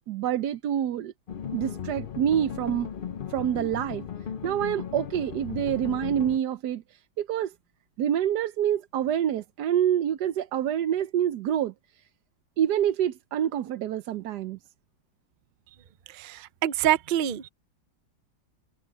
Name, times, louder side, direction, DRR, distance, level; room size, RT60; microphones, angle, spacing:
voice 1, 0.1-1.1 1.5-2.9 3.3-4.0 4.4-7.5 8.0-12.0 12.6-14.6, right 10 dB, 80° right, 1.3 m, -27 dB
sound 1, 1.3-6.4, left 8 dB, 50° left, 0.6 m, -36 dB
voice 2, 16.1-17.5, right 11 dB, 65° right, 0.4 m, -26 dB
omnidirectional pair, 1.7 m